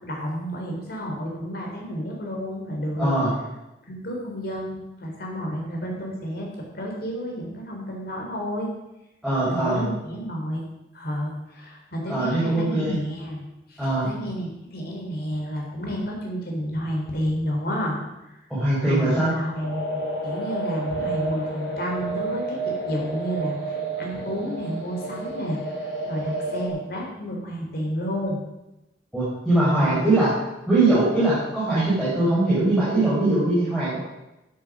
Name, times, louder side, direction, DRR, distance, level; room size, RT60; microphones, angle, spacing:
voice 1, 0.0-3.1 3.9-8.7 9.5-10.6 10.9-13.4 13.7-18.3 18.9-22.6 22.9-25.8 26.1-28.4 29.7-30.2, equal, 60° left, 0 dB, 3.8 m, -31 dB
voice 2, 3.0-3.3 9.2-9.9 12.1-13.0 13.8-14.1 18.5-19.3 29.1-30.3 30.7-34.0, right 2 dB, ahead, -11 dB, 4.3 m, -21 dB
sound 1, 19.5-26.7, right 2 dB, 85° left, 4.6 m, -30 dB
12.5 x 8.5 x 6.2 m, 0.96 s
head